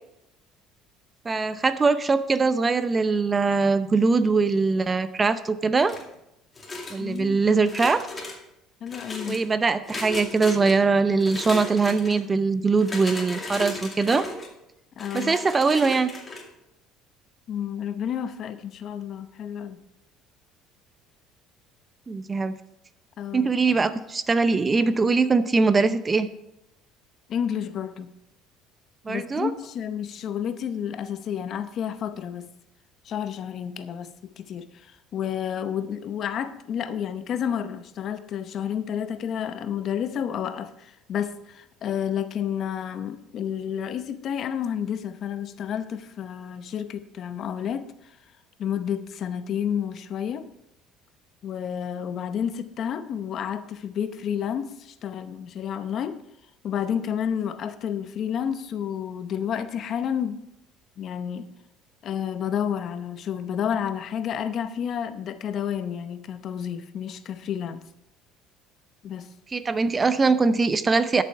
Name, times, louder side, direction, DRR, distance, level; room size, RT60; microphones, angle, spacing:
voice 1, 1.2-6.0 6.9-8.1 9.3-14.3 15.1-16.1 22.1-22.5 23.3-26.3 29.1-29.5 69.5-71.2, right 4 dB, 25° right, 13 dB, 0.6 m, -22 dB
sound 1, 5.8-6.1 6.6-7.2 7.6-8.4 8.9-9.4 9.9-10.7 11.2-12.2 12.7-14.5 15.0-16.4, left 2 dB, 25° left, 2.4 m, -36 dB
voice 2, 7.0-7.4 8.8-9.4 15.0-15.4 17.5-19.8 23.2-23.5 23.9-24.0 27.3-28.1 29.1-32.5 33.0-48.2 48.6-50.4 51.4-56.2 56.6-60.5 61.0-61.5 62.0-67.8 69.0-69.3, left 8 dB, 50° left, 11 dB, 0.8 m, -30 dB
12.0 x 7.0 x 4.6 m, 0.82 s
supercardioid pair, 100°, 0 cm